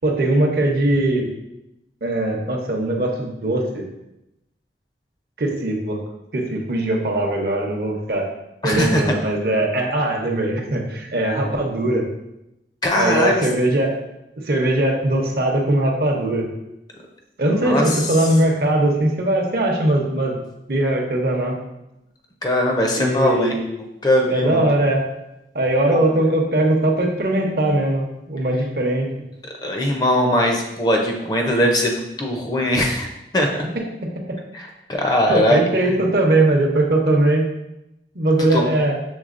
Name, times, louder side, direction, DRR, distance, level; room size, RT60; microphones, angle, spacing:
voice 1, 0.0-1.3 2.0-3.8 5.4-6.0 6.3-8.3 8.6-12.0 13.0-13.9 14.4-16.5 17.4-20.3 20.7-21.6 23.0-23.6 24.3-25.0 25.5-29.1 34.0-34.1 35.3-37.5 38.1-39.0, right 1 dB, 60° right, 1 dB, 0.7 m, -20 dB
voice 2, 8.6-9.1 12.8-13.5 17.5-18.1 22.4-23.5 24.0-24.7 25.9-26.0 29.6-33.1 33.3-33.5 34.5-35.6 38.5-38.7, left 1 dB, 25° left, 1 dB, 0.5 m, -20 dB
6.2 x 3.5 x 2.5 m, 0.89 s
head